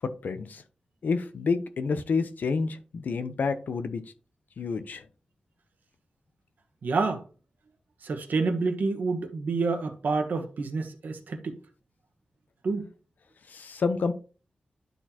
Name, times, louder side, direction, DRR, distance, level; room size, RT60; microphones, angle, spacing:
voice 1, 0.2-0.6 1.0-4.0 4.6-5.0 13.5-14.1, left 4 dB, 90° left, 0.8 m, -29 dB
voice 2, 6.8-7.2 8.0-11.6 12.6-12.8, right 4 dB, 85° right, 1.3 m, -28 dB
11.5 x 4.2 x 2.9 m
wide cardioid pair, 150°, 3 cm